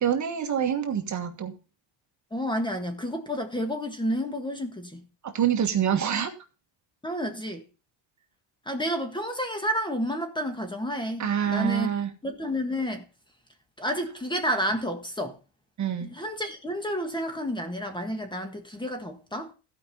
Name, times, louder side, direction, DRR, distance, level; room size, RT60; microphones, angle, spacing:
voice 1, 0.0-1.5 5.2-6.3 11.2-12.1 15.8-16.1, right 9 dB, 35° right, 1.6 m, -26 dB
voice 2, 2.3-5.0 7.0-7.6 8.6-11.9 12.2-13.0 13.8-15.4 16.0-19.5, equal, 10° left, 1.6 m, -30 dB
15.5 x 5.3 x 5.5 m
cardioid pair, 130°, 47 cm